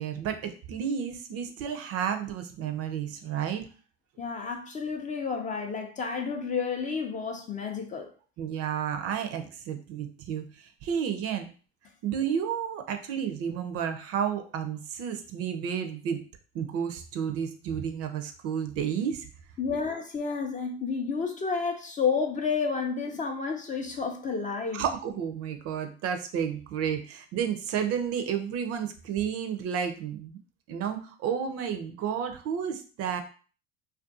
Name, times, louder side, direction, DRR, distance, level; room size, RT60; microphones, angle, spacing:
voice 1, 0.0-3.7 8.4-11.5 12.0-16.2 16.5-19.3 24.7-30.4 30.7-33.2, right 8 dB, 45° right, 0.5 m, -31 dB
voice 2, 4.2-8.1 19.6-24.8, left 5 dB, 25° left, 0.4 m, -30 dB
2.4 x 2.3 x 2.6 m
hypercardioid pair, 85°, 33 cm